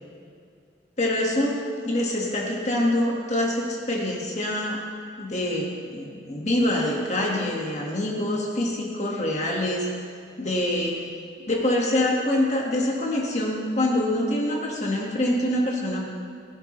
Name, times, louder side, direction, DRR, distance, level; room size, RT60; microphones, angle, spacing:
voice 1, 1.0-4.8 5.2-9.9 10.4-11.0 11.5-16.0, left 1 dB, 40° left, -2 dB, 1.8 m, -25 dB
19.0 x 10.0 x 3.3 m, 2.4 s
head